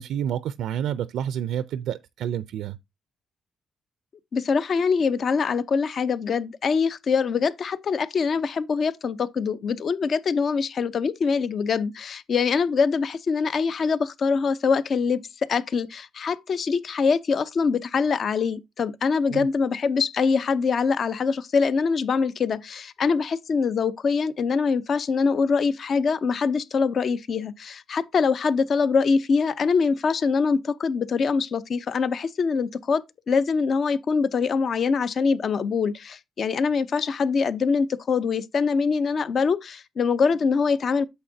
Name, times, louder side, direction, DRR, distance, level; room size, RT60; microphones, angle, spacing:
voice 1, 0.0-2.8 19.3-19.5, right 10 dB, 80° right, 0.5 m, -29 dB
voice 2, 4.3-15.2 15.5-41.0, left 5 dB, 45° left, 0.7 m, -24 dB
8.8 x 6.9 x 2.7 m
cardioid pair, 130°, 0 cm